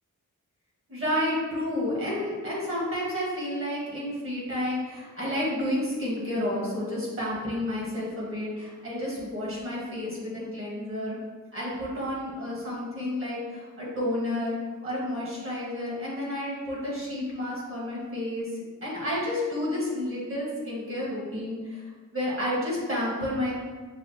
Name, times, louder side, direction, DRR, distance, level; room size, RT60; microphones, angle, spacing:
voice 1, 0.9-11.2 11.5-14.5 14.8-18.5 18.8-23.5, left 1 dB, 40° right, -6 dB, 1.4 m, -30 dB
6.5 x 2.5 x 2.7 m, 1.4 s
wide cardioid pair, 140°, 32 cm